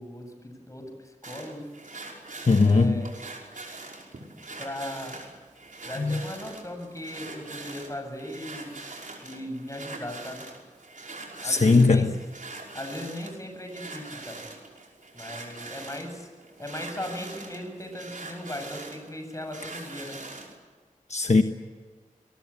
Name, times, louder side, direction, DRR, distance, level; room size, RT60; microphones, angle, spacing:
voice 1, 0.0-1.7 2.5-3.2 4.6-5.2 5.8-8.8 9.2-10.5 11.4-12.2 12.7-14.5 15.1-16.3 16.6-20.2, left 1 dB, 25° left, 7.8 m, -38 dB
sound 1, 1.2-20.6, right 3 dB, 80° right, 5.5 m, -43 dB
voice 2, 2.5-2.9 6.0-6.2 11.4-12.1 21.1-21.4, left 3 dB, 55° left, 1.2 m, -19 dB
27.0 x 22.0 x 8.6 m
wide cardioid pair, 60°, 13 cm